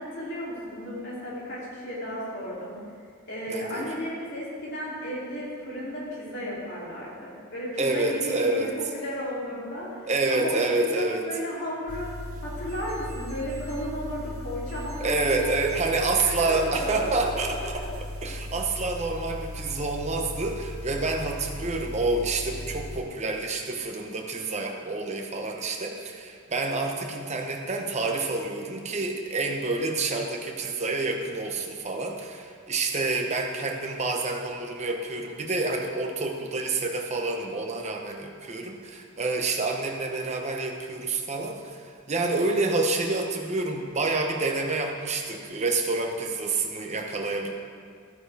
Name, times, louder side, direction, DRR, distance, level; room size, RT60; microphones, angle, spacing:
voice 1, 0.0-2.7 3.2-12.1 12.4-15.6 15.9-17.1 17.6-17.9, equal, 55° left, -6 dB, 3.0 m, -34 dB
voice 2, 3.5-3.9 7.8-8.7 10.1-11.2 15.0-17.8 18.2-47.5, right 3 dB, 30° right, 2 dB, 1.0 m, -28 dB
sound 1, 11.9-23.0, left 1 dB, 85° right, 0.9 m, -37 dB
13.0 x 9.5 x 3.5 m, 2.1 s
head